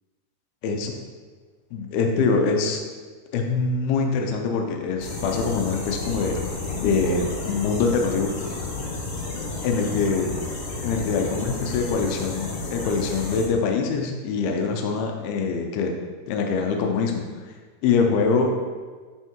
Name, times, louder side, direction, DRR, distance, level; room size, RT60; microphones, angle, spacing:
voice 1, 1.7-2.8 3.3-6.4 6.7-8.3 9.6-10.3 10.8-15.9 16.3-17.2 17.8-18.5, left 4 dB, 80° left, 2 dB, 2.2 m, -24 dB
sound 1, 5.0-13.5, left 3 dB, 60° left, 2.0 m, -31 dB
10.0 x 4.6 x 4.5 m, 1.5 s
omnidirectional pair, 5.5 m